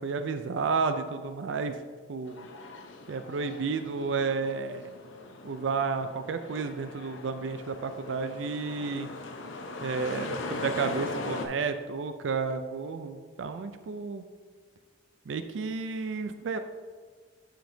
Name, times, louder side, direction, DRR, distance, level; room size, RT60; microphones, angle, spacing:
voice 1, 0.0-1.7 2.1-2.5 3.1-4.9 5.4-9.1 9.8-14.2 15.3-16.6, right 4 dB, 80° right, 9 dB, 0.4 m, -31 dB
sound 1, 2.3-11.5, left 2 dB, 85° left, 0.7 m, -40 dB
8.9 x 5.1 x 2.7 m, 1.5 s
head